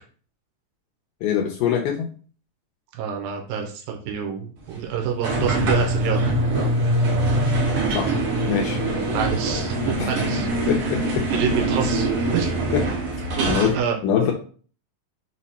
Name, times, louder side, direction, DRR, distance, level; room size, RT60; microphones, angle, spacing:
voice 1, 1.2-2.1 7.9-8.1 8.5-8.8 10.0-10.1 10.7-11.3 12.7-12.8 13.4-13.7 14.0-14.3, left 8 dB, 80° left, 0 dB, 2.1 m, -23 dB
voice 2, 2.9-6.3 6.6-6.7 9.1-10.5 10.8-11.0 11.3-12.5 13.4-14.0, right 7 dB, 90° right, 3 dB, 2.4 m, -27 dB
sound 1, 5.2-13.8, right 1 dB, 55° right, 1.6 m, -23 dB
6.2 x 2.1 x 4.1 m, 0.42 s
omnidirectional pair, 3.9 m